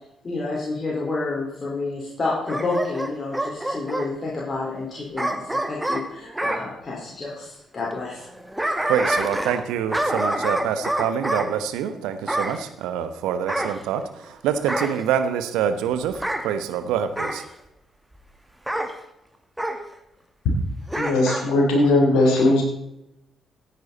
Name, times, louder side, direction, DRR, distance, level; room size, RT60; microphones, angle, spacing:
voice 1, 0.2-8.3, left 3 dB, 40° left, -5 dB, 4.3 m, -29 dB
Bark / Growling, 2.5-4.1 5.2-6.6 8.2-9.6 9.9-11.5 12.3-12.6 13.5-14.3 14.7-15.0 16.1-16.4 17.2-17.4 18.7-18.9 19.6-19.8 20.9-21.5 21.8-21.9, right 1 dB, 10° right, 2.0 m, -26 dB
voice 2, 8.9-14.0 14.4-16.1 16.4-17.4, right 8 dB, 75° right, 10 dB, 1.0 m, -25 dB
voice 3, 20.9-22.6, left 2 dB, 70° left, 0 dB, 3.4 m, -18 dB
14.5 x 9.5 x 4.1 m, 0.84 s
hypercardioid pair, 40°, 0 cm